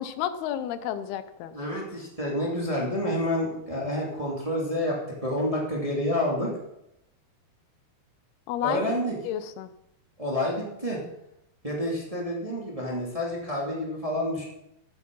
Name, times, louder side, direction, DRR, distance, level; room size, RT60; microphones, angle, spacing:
voice 1, 0.0-1.5 8.5-8.8 9.2-9.7, left 10 dB, 90° left, 12 dB, 2.8 m, -31 dB
voice 2, 1.5-6.5 8.6-9.2 10.2-11.0 11.6-14.4, left 1 dB, 10° right, -3 dB, 2.2 m, -29 dB
15.0 x 8.5 x 5.4 m, 0.83 s
omnidirectional pair, 4.4 m